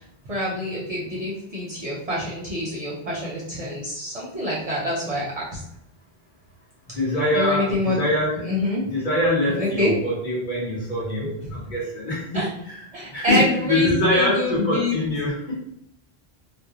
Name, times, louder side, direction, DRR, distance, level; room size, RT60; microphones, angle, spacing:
voice 1, 0.3-5.6 7.3-8.0 8.4-8.8 9.6-9.9 11.2-11.3 12.3-12.5 12.9-15.0, left 1 dB, 45° right, -6 dB, 0.6 m, -26 dB
voice 2, 6.9-8.4 8.9-15.6, left 1 dB, 50° left, -6 dB, 1.1 m, -24 dB
2.4 x 2.1 x 2.9 m, 0.74 s
omnidirectional pair, 1.0 m